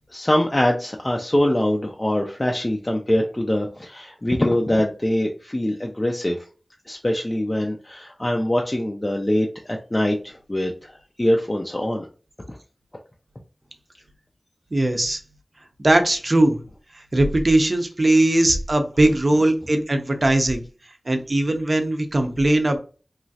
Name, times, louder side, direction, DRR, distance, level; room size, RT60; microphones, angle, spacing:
voice 1, 0.1-6.4 6.9-12.1 12.5-12.6, left 1 dB, 25° left, 1 dB, 0.4 m, -23 dB
voice 2, 14.7-15.2 15.8-16.6 17.1-20.6 21.1-22.8, right 1 dB, 45° right, 5 dB, 0.5 m, -19 dB
3.0 x 2.3 x 2.7 m, 0.36 s
wide cardioid pair, 75°, 0 cm